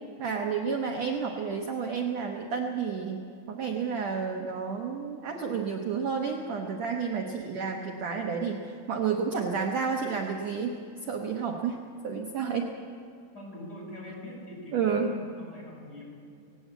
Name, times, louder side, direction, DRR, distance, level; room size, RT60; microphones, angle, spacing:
voice 1, 0.2-10.8 11.1-11.8 12.0-12.7 14.7-15.1, right 6 dB, 60° right, 2 dB, 2.0 m, -30 dB
voice 2, 13.3-16.0, left 1 dB, 25° left, -3 dB, 7.1 m, -43 dB
18.0 x 17.5 x 9.1 m, 2.4 s
omnidirectional pair, 4.1 m